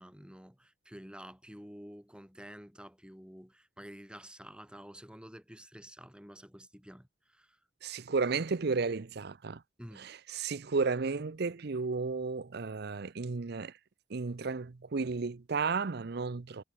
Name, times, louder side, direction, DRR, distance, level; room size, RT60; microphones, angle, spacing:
voice 1, 0.0-7.6 9.8-10.1, equal, 5° right, 4.3 m, -50 dB
voice 2, 7.8-9.6 10.0-13.7 14.1-16.6, right 4 dB, 60° right, 0.7 m, -33 dB
head